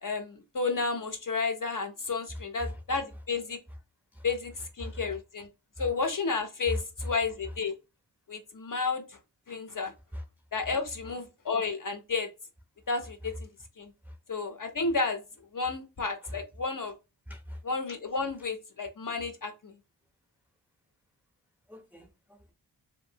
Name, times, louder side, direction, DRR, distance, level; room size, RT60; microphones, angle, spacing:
voice 1, 0.0-3.6 4.2-5.5 5.8-7.7 8.3-9.2 9.5-9.9 10.5-12.3 12.9-13.3 13.8-13.9 14.3-15.2 15.5-16.9 17.6-19.7, left 4 dB, 50° left, 0.5 m, -32 dB
voice 2, 6.7-7.1 10.1-10.2 14.1-14.2 16.2-16.3 17.3-17.6 21.7-22.5, equal, 5° right, 0.5 m, -39 dB
2.6 x 2.5 x 2.6 m
wide cardioid pair, 70°, 45 cm